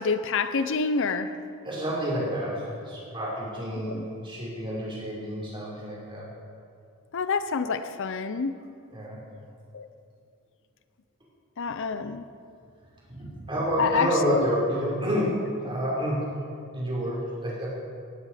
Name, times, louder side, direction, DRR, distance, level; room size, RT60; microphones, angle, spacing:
voice 1, 0.0-1.4 3.8-4.1 7.1-8.6 9.7-9.9 11.6-12.2 13.8-14.4, left 5 dB, 60° left, 11 dB, 0.6 m, -27 dB
voice 2, 1.6-6.3 8.9-9.2 13.1-16.2 16.7-17.8, equal, 25° right, -5 dB, 5.6 m, -29 dB
18.0 x 16.0 x 5.0 m, 2.3 s
head